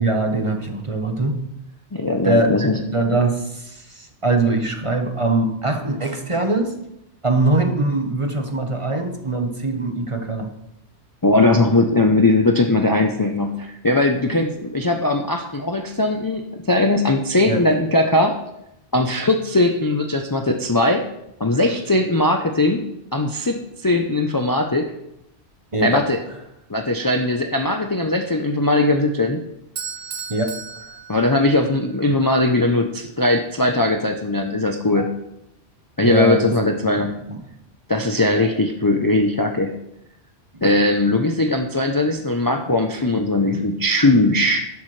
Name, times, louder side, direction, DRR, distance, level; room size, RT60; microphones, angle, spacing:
voice 1, 0.0-1.4 2.2-6.7 7.2-10.5 17.5-17.6 25.7-26.0 27.1-27.2 30.3-30.5 35.0-35.1 36.0-36.5 36.8-37.1, right 2 dB, 30° right, 5 dB, 1.1 m, -22 dB
voice 2, 1.9-2.8 11.2-18.3 18.9-21.0 21.4-22.8 23.1-24.9 25.8-26.2 26.7-29.4 31.1-35.1 36.0-37.2 37.9-39.7 40.6-44.6, left 2 dB, 20° left, 3 dB, 0.6 m, -19 dB
Bell / Doorbell, 29.8-31.8, right 6 dB, 65° right, 1.3 m, -34 dB
11.5 x 11.0 x 3.3 m, 0.84 s
omnidirectional pair, 1.2 m